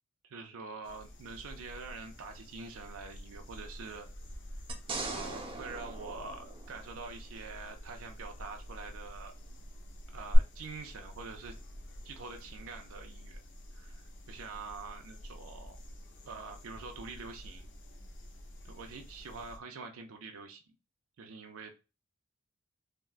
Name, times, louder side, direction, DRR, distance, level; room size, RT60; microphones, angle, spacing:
voice 1, 0.2-4.1 5.0-9.3 10.1-11.6 12.0-13.4 13.7-15.8 16.3-17.7 18.6-20.6 21.2-21.7, right 4 dB, 85° right, 4 dB, 0.5 m, -45 dB
sound 1, 0.8-19.6, equal, 65° left, 0.6 m, -49 dB
sound 2, 4.7-7.2 10.3-10.4, right 2 dB, 25° right, 0.6 m, -39 dB
3.5 x 2.2 x 2.4 m, 0.30 s
head